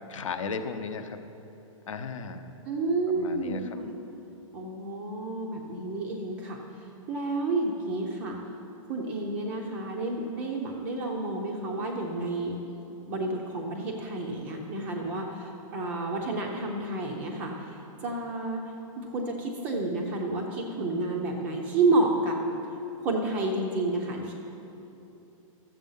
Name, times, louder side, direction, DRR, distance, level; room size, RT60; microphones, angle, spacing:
voice 1, 0.1-1.2 1.9-2.5 3.1-3.8, left 4 dB, 65° left, 9 dB, 0.9 m, -35 dB
voice 2, 2.6-3.9 4.5-6.6 7.1-8.4 8.9-12.6 13.1-17.8 18.0-18.6 19.0-22.4 23.0-24.3, right 2 dB, 10° right, 0 dB, 0.4 m, -30 dB
13.0 x 7.4 x 5.5 m, 2.9 s
hypercardioid pair, 180°, 18 cm